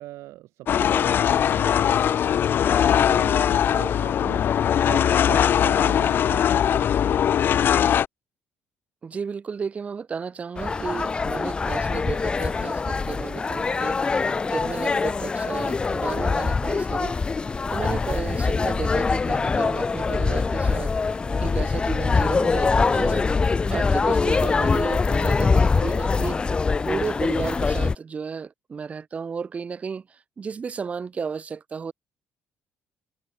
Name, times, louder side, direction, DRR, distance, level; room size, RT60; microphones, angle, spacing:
voice 1, 0.0-2.3 2.7-4.5 4.9-7.2, right 16 dB, 80° right, 3.9 m, -40 dB
sound 1, 0.7-8.1, left 9 dB, 45° left, 1.3 m, -20 dB
voice 2, 9.0-14.0 14.4-17.1 17.7-20.9 21.4-23.3 23.7-26.4 26.8-30.0 30.4-31.9, right 5 dB, 30° right, 3.2 m, -33 dB
sound 2, 10.6-28.0, left 4 dB, 20° left, 0.5 m, -23 dB
cardioid pair, 140°, 5 cm